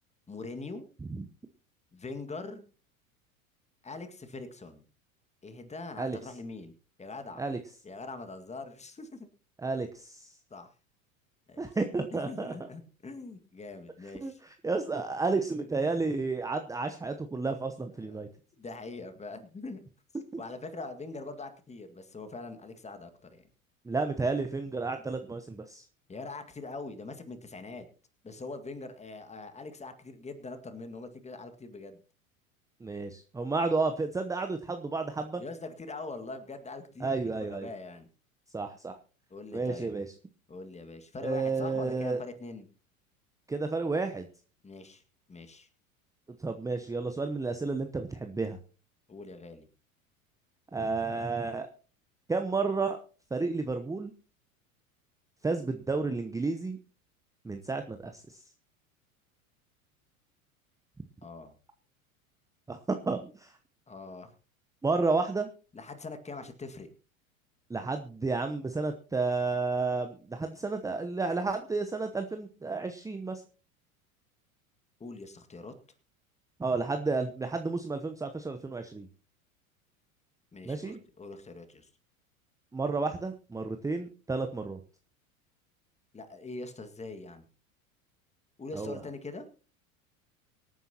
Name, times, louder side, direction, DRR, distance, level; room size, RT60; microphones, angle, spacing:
voice 1, 0.3-0.8 1.9-2.6 3.8-4.9 5.4-6.7 7.0-7.4 7.8-9.3 10.5-10.7 11.5-11.7 12.1-14.4 18.0-18.3 18.6-19.8 20.4-23.4 26.1-27.9 28.2-32.0 35.4-38.1 39.3-39.9 40.5-42.7 44.6-45.0 45.3-45.7 49.1-49.7 61.2-61.5 63.9-64.3 65.7-66.9 75.0-75.7 80.5-81.9 86.1-87.5 88.6-89.5, left 3 dB, 15° left, 8 dB, 1.9 m, -43 dB
voice 2, 9.6-10.3 11.6-12.5 14.2-18.3 20.3-20.4 23.9-25.8 32.8-35.4 37.0-37.7 38.5-39.0 39.5-40.1 41.2-42.2 43.5-44.3 46.4-48.6 50.7-51.7 52.3-53.0 53.3-54.1 55.4-56.8 57.4-58.4 62.7-63.5 64.8-65.5 67.7-73.4 76.6-79.1 80.6-81.0 82.7-84.8 88.8-89.0, right 3 dB, 10° right, 7 dB, 0.8 m, -31 dB
24.0 x 9.2 x 2.9 m, 0.36 s
figure-of-eight pair, 85°, 42 cm